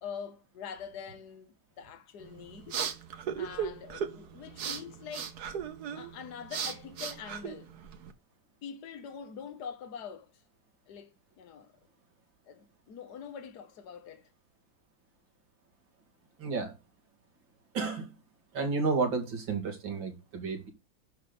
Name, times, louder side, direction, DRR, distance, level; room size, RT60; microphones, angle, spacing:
voice 1, 0.0-2.8 3.4-5.4 5.9-7.7 8.6-10.3 10.9-11.7 12.5-14.3, left 7 dB, 60° left, 1.7 m, -44 dB
sound 1, 2.2-8.1, right 7 dB, 60° right, 1.6 m, -37 dB
voice 2, 16.4-16.8 17.7-18.1 18.5-20.7, right 4 dB, 85° right, 3.0 m, -31 dB
11.0 x 4.0 x 6.9 m
omnidirectional pair, 2.0 m